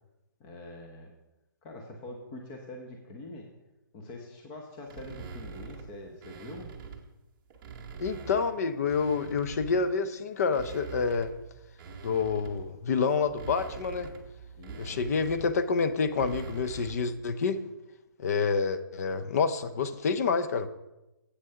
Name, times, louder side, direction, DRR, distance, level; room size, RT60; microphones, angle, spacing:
voice 1, 0.4-1.1 1.6-3.5 3.9-6.7 14.5-15.0, left 2 dB, 20° left, 1 dB, 0.9 m, -44 dB
sound 1, 4.9-7.1 7.5-9.9 10.4-17.1, right 6 dB, 25° right, 0.9 m, -44 dB
voice 2, 8.0-11.3 12.0-14.1 14.8-17.6 18.2-20.7, left 5 dB, 45° left, 11 dB, 0.6 m, -28 dB
8.1 x 6.2 x 5.6 m, 0.97 s
hypercardioid pair, 160°, 11 cm